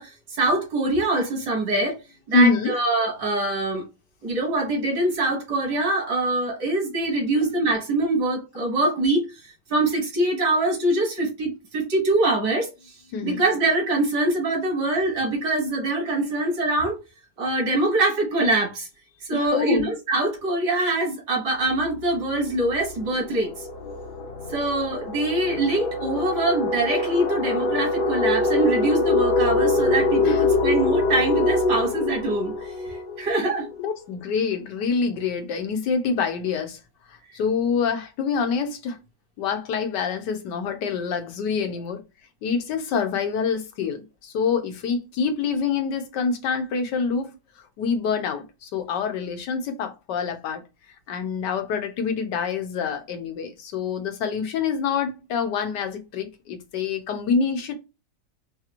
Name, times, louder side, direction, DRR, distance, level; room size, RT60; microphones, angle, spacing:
voice 1, 0.0-2.0 2.3-3.8 4.2-9.3 9.7-12.9 13.2-17.0 17.4-18.9 19.3-23.5 24.5-33.7, right 2 dB, 80° right, 2.1 m, -24 dB
voice 2, 2.3-2.8 7.4-7.5 13.1-13.4 19.3-19.9 30.2-30.4 33.8-36.8 37.1-39.0 39.4-42.0 42.4-47.3 47.8-50.6 51.1-57.7, left 5 dB, 90° left, 1.4 m, -26 dB
sound 1, 21.7-21.9 22.2-33.8, left 2 dB, 70° left, 1.4 m, -24 dB
4.7 x 2.5 x 2.9 m
omnidirectional pair, 1.8 m